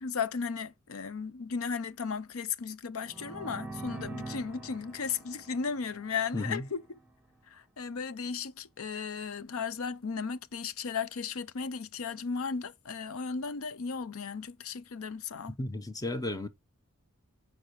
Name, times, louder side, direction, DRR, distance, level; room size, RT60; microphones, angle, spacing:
voice 1, 0.0-6.8 7.5-15.5, left 5 dB, 80° left, 0.6 m, -35 dB
sound 1, 3.0-6.7, right 2 dB, 5° right, 1.1 m, -44 dB
voice 2, 6.3-6.7 15.6-16.5, left 2 dB, 15° left, 0.6 m, -33 dB
6.5 x 4.5 x 4.5 m
head